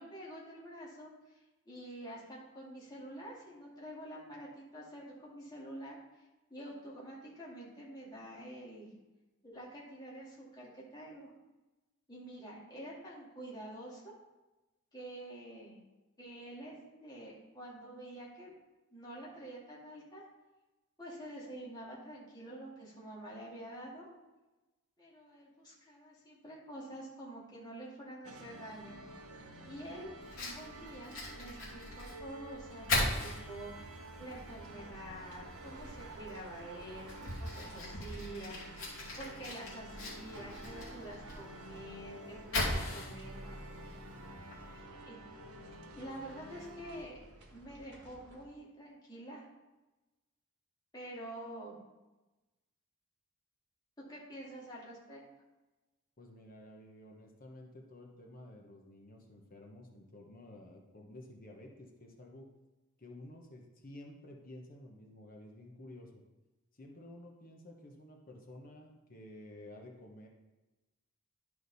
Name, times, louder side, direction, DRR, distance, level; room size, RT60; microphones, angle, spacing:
voice 1, 0.0-6.0 6.5-8.9 9.4-11.3 12.1-14.1 14.9-15.8 16.2-18.5 18.9-20.2 21.0-24.1 25.0-29.0 29.6-30.1 30.4-33.9 34.2-38.9 39.2-45.2 46.0-47.2 47.5-49.5 50.9-51.8 54.0-55.2, right 1 dB, 20° left, -6 dB, 2.5 m, -48 dB
sound 1, 28.2-47.0, right 1 dB, 80° right, 1.0 m, -51 dB
sound 2, 28.8-48.4, right 1 dB, 55° right, 1.4 m, -56 dB
Fire, 30.2-44.8, left 2 dB, 65° left, 2.7 m, -40 dB
voice 2, 56.2-62.5 63.0-66.2 66.7-70.3, left 1 dB, 40° left, 0 dB, 1.1 m, -52 dB
11.5 x 5.0 x 4.1 m, 1.1 s
head